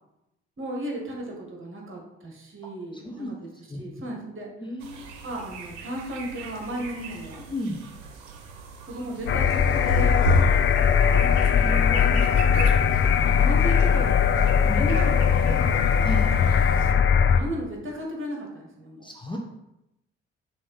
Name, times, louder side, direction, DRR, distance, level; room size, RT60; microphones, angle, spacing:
voice 1, 0.6-4.5 5.2-7.4 8.8-10.3 10.9-12.2 12.5-12.7 13.2-16.3 17.3-19.1, right 1 dB, 35° right, 0 dB, 1.8 m, -35 dB
voice 2, 4.6-5.2 7.5-7.8 11.6-12.2 14.7-14.8 16.0-16.2 19.0-19.4, left 1 dB, 15° left, 0 dB, 0.9 m, -33 dB
sound 1, 4.8-16.9, right 3 dB, 70° right, 0.8 m, -35 dB
sound 2, 9.3-17.4, left 7 dB, 35° left, 0.5 m, -20 dB
6.2 x 2.8 x 5.6 m, 0.88 s
figure-of-eight pair, 40°, 33 cm